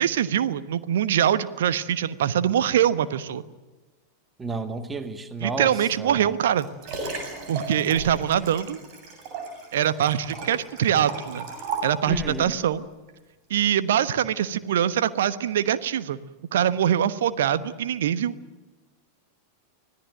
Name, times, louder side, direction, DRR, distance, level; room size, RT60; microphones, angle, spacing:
voice 1, 0.0-3.4 5.4-6.7 7.5-8.8 9.7-11.4 11.8-12.8 13.5-16.2 16.5-18.3, right 10 dB, 60° right, 13 dB, 1.2 m, -23 dB
voice 2, 4.4-6.3 12.1-12.5, right 3 dB, 15° right, 9 dB, 1.7 m, -32 dB
Liquid, 6.4-12.4 13.1-13.2, right 4 dB, 40° right, 7.6 m, -35 dB
26.0 x 17.5 x 9.1 m, 1.2 s
figure-of-eight pair, 90°, 0 cm